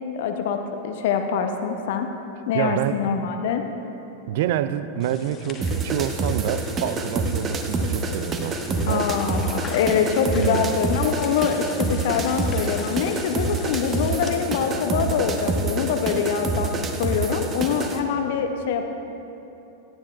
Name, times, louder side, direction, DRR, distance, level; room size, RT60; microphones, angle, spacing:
voice 1, 0.1-2.1 2.5-3.6 8.9-18.8, left 6 dB, 55° left, 6 dB, 0.7 m, -24 dB
voice 2, 2.5-3.0 4.3-9.1 10.3-10.7, right 11 dB, 50° right, 13 dB, 0.4 m, -27 dB
sound 1, 5.0-14.3, left 5 dB, 25° left, 1.0 m, -43 dB
sound 2, 5.6-18.0, right 3 dB, 25° right, 0.9 m, -27 dB
18.0 x 10.5 x 2.4 m, 2.9 s
figure-of-eight pair, 90°, 0 cm